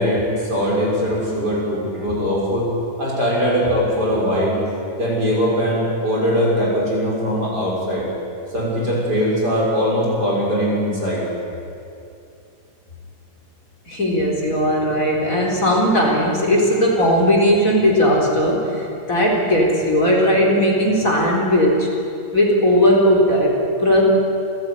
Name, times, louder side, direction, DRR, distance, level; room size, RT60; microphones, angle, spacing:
voice 1, 0.0-2.7 3.0-4.6 4.9-8.1 8.5-11.2, equal, 30° right, -4 dB, 6.6 m, -21 dB
voice 2, 13.9-21.9 22.3-24.0, equal, 25° left, -2 dB, 4.1 m, -17 dB
28.5 x 14.5 x 9.8 m, 2.6 s
omnidirectional pair, 3.7 m